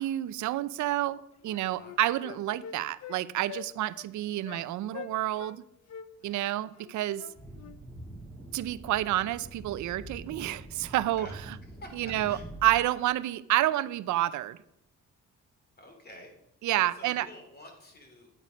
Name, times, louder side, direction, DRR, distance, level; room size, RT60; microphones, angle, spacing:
voice 1, 0.0-5.6 6.2-7.2 8.5-11.3 11.9-14.6 16.6-17.3, right 14 dB, 70° right, 17 dB, 0.5 m, -29 dB
Wind instrument woodwind instrument, 1.0-1.1 1.4-3.2 3.5-3.7 3.9-4.1 4.4-4.6 4.9-5.6 5.9-7.8, left 8 dB, 60° left, 0.7 m, -44 dB
voice 2, 1.5-1.9 6.2-6.5 11.2-11.3 11.8-12.0 12.3-12.4 15.8-16.3 16.9-18.3, left 1 dB, 30° left, 3 dB, 2.9 m, -49 dB
sound 1, 7.3-12.8, right 1 dB, 5° right, 2.2 m, -45 dB
8.9 x 8.8 x 5.1 m, 0.79 s
cardioid pair, 90°, 30 cm